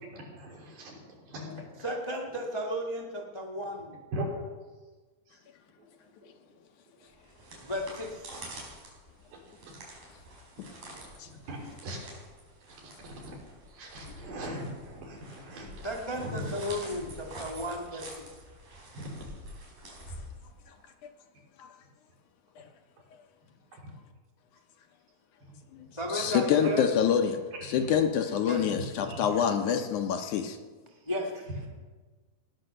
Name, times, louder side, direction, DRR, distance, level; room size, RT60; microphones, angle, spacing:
voice 1, 0.0-1.7 4.1-4.2 5.3-5.4 5.8-5.9 6.3-6.4 9.3-9.4 9.7-9.8 10.7-12.2 12.8-13.4 13.6-15.9 16.2-16.5 18.9-19.1 23.7-23.8 25.4-25.7 26.6-26.7 27.6-28.0 28.5-29.3 31.6-31.7, right 1 dB, 85° right, -1 dB, 5.2 m, -41 dB
voice 2, 1.8-4.0 7.6-8.5 15.8-18.3 26.0-26.9 28.4-28.6 31.1-31.5, equal, 30° left, 0 dB, 0.5 m, -34 dB
sound 1, 7.1-20.8, right 1 dB, 55° right, 5.5 m, -47 dB
voice 3, 26.1-30.6, left 8 dB, 70° left, 5 dB, 2.1 m, -26 dB
17.0 x 10.5 x 6.7 m, 1.3 s
omnidirectional pair, 4.1 m